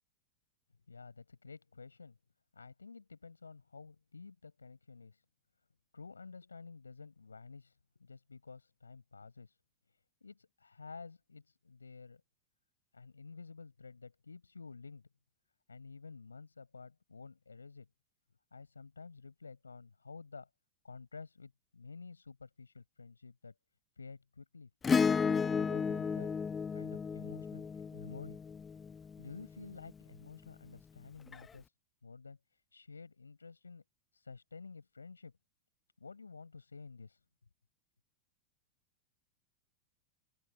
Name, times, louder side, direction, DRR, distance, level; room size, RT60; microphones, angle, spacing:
voice 1, 0.9-2.2 2.5-5.2 5.9-9.6 9.9-12.2 12.9-15.1 15.7-17.9 18.5-20.5 20.8-23.5 24.0-24.7 25.2-26.3 26.7-28.4 28.9-31.7 32.0-33.8 34.1-35.3 36.0-37.2, left 4 dB, 75° left, 6.3 m, -51 dB
Acoustic guitar / Strum, 24.8-29.4 31.3-31.4, left 6 dB, 15° left, 0.5 m, -33 dB
open air
figure-of-eight pair, 90°, 0 cm